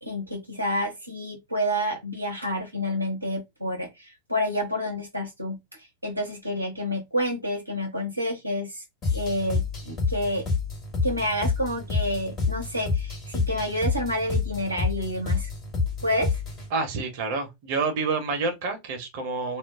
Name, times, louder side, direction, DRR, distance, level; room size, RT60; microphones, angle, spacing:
voice 1, 0.0-8.8 9.1-10.5 11.0-15.5 16.0-16.4, equal, 85° right, 0.7 m, -29 dB
sound 1, 9.0-16.7, left 4 dB, 30° left, 1.4 m, -28 dB
voice 2, 16.7-19.6, right 4 dB, 50° right, 0.8 m, -28 dB
2.4 x 2.0 x 3.6 m
figure-of-eight pair, 90°, 0 cm